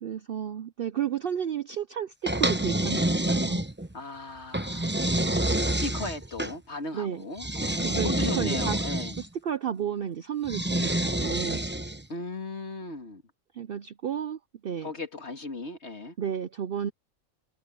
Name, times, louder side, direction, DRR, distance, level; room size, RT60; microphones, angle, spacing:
voice 1, 0.0-3.6 6.9-7.3 7.8-8.8 9.2-11.6 13.5-14.9 16.2-16.9, right 9 dB, 60° right, 0.6 m, -32 dB
sound 1, 2.3-3.9 4.5-6.5 7.4-9.3 10.4-12.0, right 1 dB, 10° right, 0.8 m, -27 dB
voice 2, 3.9-5.0 5.7-9.2 12.1-13.2 14.8-16.1, left 2 dB, 50° left, 2.7 m, -37 dB
omnidirectional pair, 1.4 m